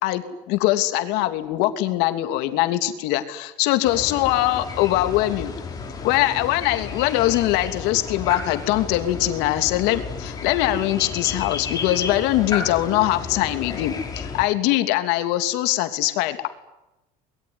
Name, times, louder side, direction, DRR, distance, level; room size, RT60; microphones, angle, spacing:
voice 1, 0.0-5.5 6.0-16.5, left 15 dB, 85° left, 8 dB, 3.0 m, -22 dB
sound 1, 3.8-14.5, left 5 dB, 25° left, 6.1 m, -32 dB
24.5 x 22.0 x 9.9 m, 0.97 s
cardioid pair, 150°, 17 cm